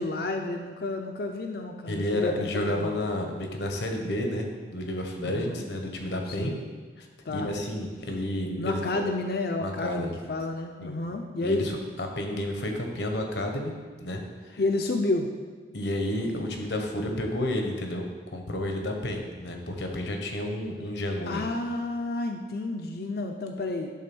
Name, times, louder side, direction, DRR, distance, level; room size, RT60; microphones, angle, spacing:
voice 1, 0.0-3.0 5.3-5.7 6.3-6.6 7.2-7.5 8.1-8.2 8.6-11.7 14.6-15.3 21.3-23.9, left 2 dB, 60° left, 4 dB, 0.6 m, -30 dB
voice 2, 1.9-6.5 7.0-9.0 9.6-10.2 10.8-11.0 11.4-13.7 14.0-14.6 15.7-18.0 18.3-21.4, left 1 dB, 80° left, 3 dB, 1.2 m, -31 dB
11.0 x 3.7 x 6.1 m, 1.4 s
head